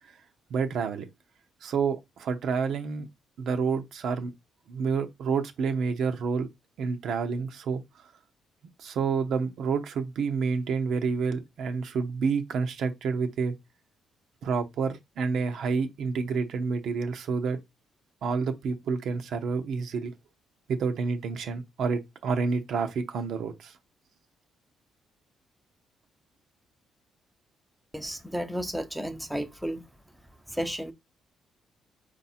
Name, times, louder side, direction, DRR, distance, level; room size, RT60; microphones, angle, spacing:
voice 1, 0.5-1.0 1.6-3.1 3.4-4.3 4.7-6.5 6.8-7.8 8.8-13.5 14.4-17.6 18.2-20.1 20.7-23.7, right 5 dB, 70° right, 0.8 m, -29 dB
voice 2, 27.9-29.8 30.5-30.9, equal, 5° right, 0.7 m, -32 dB
4.6 x 2.6 x 4.3 m
cardioid pair, 90°, 0 cm